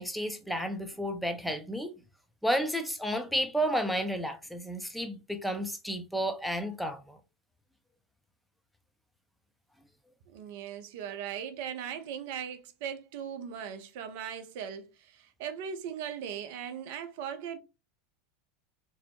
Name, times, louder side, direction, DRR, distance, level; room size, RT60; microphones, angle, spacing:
voice 1, 0.0-1.9 2.4-7.2, equal, ahead, 0.5 m, -32 dB
voice 2, 10.3-17.6, right 8 dB, 60° right, 0.4 m, -39 dB
2.6 x 2.0 x 2.8 m
hypercardioid pair, 80°, 0 cm